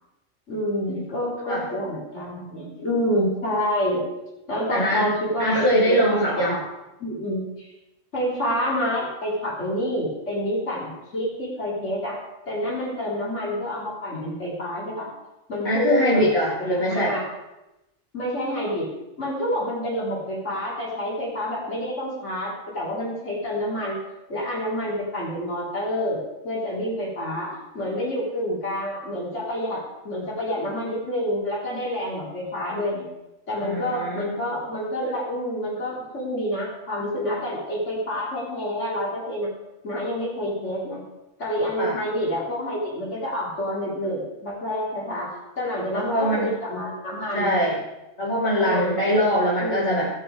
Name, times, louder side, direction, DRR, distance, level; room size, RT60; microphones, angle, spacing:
voice 1, 0.5-4.0 4.5-6.6 7.0-7.7 8.1-12.2 12.5-15.1 15.5-16.2 16.6-17.2 18.1-18.9 19.2-24.0 24.3-29.8 30.0-33.1 33.5-39.5 39.8-41.0 41.4-47.6 48.6-49.0 49.6-50.1, equal, 75° left, -6 dB, 3.8 m, -28 dB
voice 2, 4.7-5.1 5.4-6.5 15.6-17.1 33.6-34.3 41.8-41.9 45.9-46.5 47.3-47.8 48.2-50.1, equal, 40° left, -10 dB, 3.2 m, -22 dB
17.5 x 6.3 x 4.8 m, 0.96 s
omnidirectional pair, 1.2 m